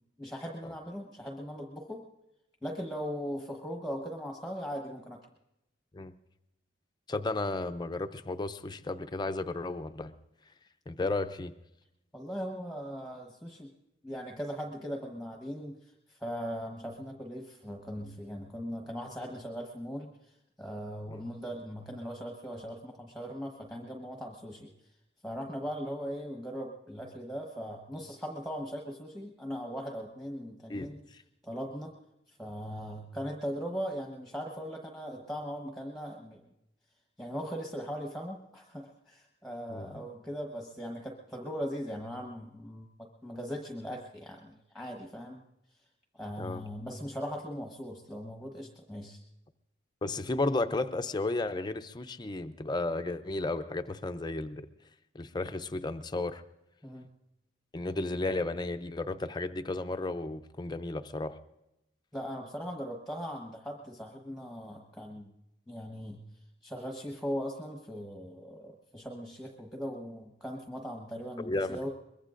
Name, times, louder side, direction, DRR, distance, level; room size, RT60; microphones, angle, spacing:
voice 1, 0.2-2.0 2.6-5.2 12.1-13.7 14.0-24.7 25.2-31.0 31.4-31.9 32.3-36.4 37.2-42.9 43.2-45.4 46.1-49.2 56.8-57.1 62.1-65.3 65.7-66.2 66.6-71.9, equal, ahead, 1 dB, 1.1 m, -39 dB
voice 2, 7.1-10.1 10.9-11.5 21.1-21.2 30.7-30.9 39.7-40.0 46.4-46.6 50.0-54.7 55.1-56.4 57.7-61.3 71.4-71.9, left 2 dB, 20° left, 9 dB, 0.5 m, -33 dB
23.0 x 21.5 x 2.5 m, 0.88 s
head